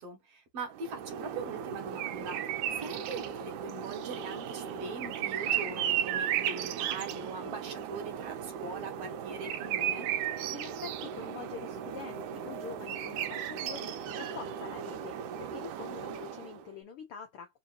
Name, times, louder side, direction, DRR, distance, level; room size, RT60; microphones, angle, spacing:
voice 1, 0.0-10.1, right 3 dB, 55° right, 2.3 m, -42 dB
sound 1, 0.7-16.6, right 9 dB, 80° right, 2.1 m, -35 dB
voice 2, 10.5-17.6, left 7 dB, 85° left, 1.2 m, -45 dB
5.0 x 2.8 x 2.6 m
omnidirectional pair, 3.6 m